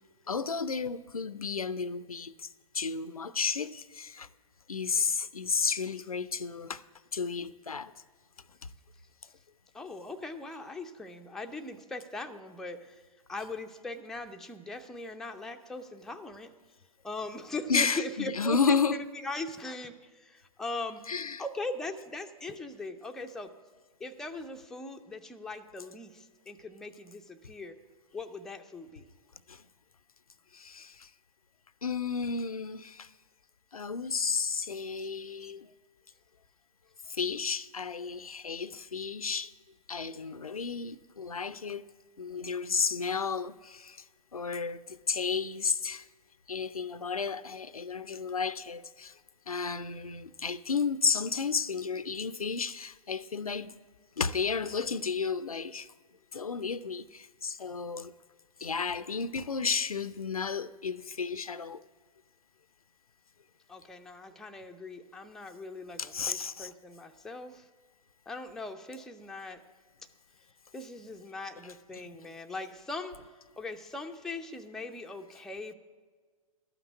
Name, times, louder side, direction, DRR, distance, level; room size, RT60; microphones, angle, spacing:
voice 1, 0.3-2.5 2.7-4.3 4.7-6.8 7.1-7.9 17.7-19.0 21.1-21.4 29.5-29.6 30.5-31.1 31.8-33.1 33.7-35.7 37.1-39.5 39.9-41.8 42.2-44.0 44.3-46.0 46.5-49.1 49.5-53.8 54.2-55.9 56.3-58.1 58.6-61.8 66.0-66.7, left 5 dB, 85° left, 0.5 m, -32 dB
voice 2, 9.7-13.0 13.3-16.5 17.0-21.0 21.4-23.5 24.0-27.8 28.1-29.1 63.7-67.7 68.3-69.6 70.7-73.2 73.6-75.7, left 2 dB, 5° left, 0.4 m, -40 dB
12.5 x 5.9 x 9.0 m
figure-of-eight pair, 110°, 18 cm